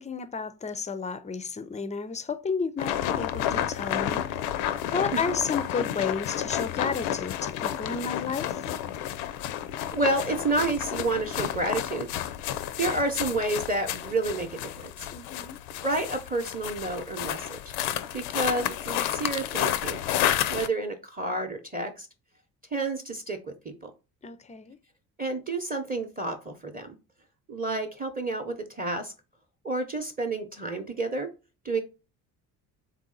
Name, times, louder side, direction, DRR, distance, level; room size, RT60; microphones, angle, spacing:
voice 1, 0.0-4.5 4.9-8.6 15.1-15.6 24.2-24.8, left 5 dB, 15° left, 0.4 m, -32 dB
sound 1, 2.8-20.7, left 11 dB, 75° left, 0.5 m, -31 dB
voice 2, 9.9-12.1 12.8-15.1 15.8-17.6 18.1-20.0 20.5-22.1 22.7-23.5 23.8-23.9 25.2-27.0 27.5-29.1 29.6-31.3 31.6-31.8, right 2 dB, 20° right, 0.7 m, -30 dB
3.5 x 2.7 x 3.8 m
hypercardioid pair, 55°, 45 cm